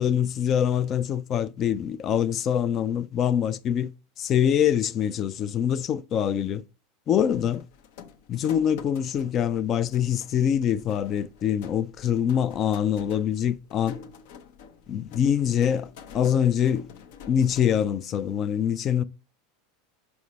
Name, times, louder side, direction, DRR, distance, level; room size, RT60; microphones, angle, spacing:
voice 1, 0.0-3.9 4.2-6.6 7.1-7.6 8.3-14.0 14.9-16.9 17.3-19.0, left 9 dB, 25° left, 0.3 m, -24 dB
sound 1, 7.2-17.9, left 7 dB, 60° left, 0.8 m, -48 dB
5.8 x 5.3 x 3.0 m
supercardioid pair, 165°, 0 cm